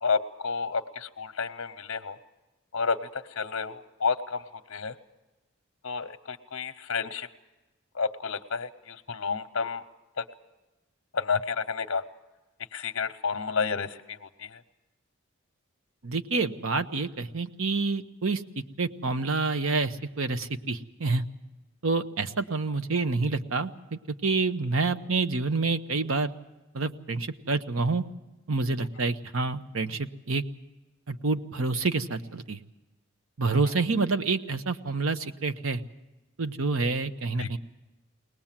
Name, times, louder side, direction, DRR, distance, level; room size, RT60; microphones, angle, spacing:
voice 1, 0.0-2.2 2.7-4.9 5.8-7.3 7.9-9.8 10.2-10.3 11.1-12.0 12.7-14.6 37.4-37.6, left 5 dB, 65° left, 8 dB, 0.8 m, -31 dB
voice 2, 16.0-21.2 21.8-26.3 26.7-28.0 28.5-30.4 31.1-32.6 33.4-35.8 36.4-37.6, right 3 dB, 75° right, 10 dB, 1.0 m, -28 dB
22.5 x 19.0 x 7.4 m, 1.1 s
head